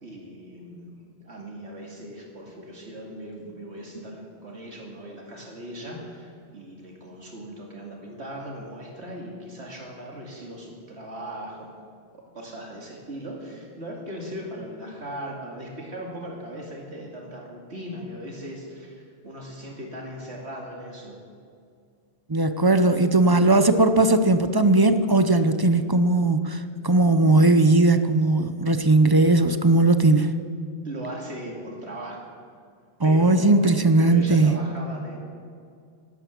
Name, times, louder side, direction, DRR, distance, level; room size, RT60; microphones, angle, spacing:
voice 1, 0.0-11.7 12.3-21.2 30.8-32.2 33.0-35.2, right 1 dB, 85° right, 0 dB, 2.8 m, -38 dB
voice 2, 22.3-30.3 33.0-34.6, right 2 dB, 25° right, 10 dB, 0.6 m, -18 dB
12.0 x 12.0 x 8.3 m, 2.4 s
omnidirectional pair, 1.1 m